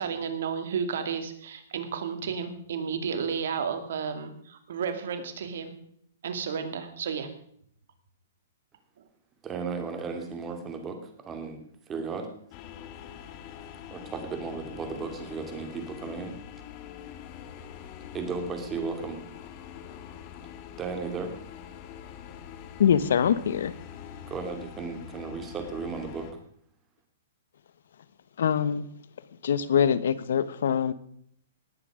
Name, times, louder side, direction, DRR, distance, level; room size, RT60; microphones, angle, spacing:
voice 1, 0.0-5.7 6.2-7.3, right 6 dB, 65° right, 7 dB, 2.5 m, -32 dB
voice 2, 9.4-11.0 11.3-11.6 11.9-12.3 13.9-16.4 18.1-19.2 20.8-21.3 24.3-26.3, right 4 dB, 20° right, 5 dB, 2.7 m, -35 dB
sound 1, 12.5-26.3, left 9 dB, 35° left, 2.2 m, -44 dB
voice 3, 22.8-23.7 28.4-28.8 29.4-30.9, left 8 dB, 70° left, 16 dB, 1.0 m, -23 dB
19.0 x 8.7 x 4.9 m, 0.67 s
hypercardioid pair, 145°, 0 cm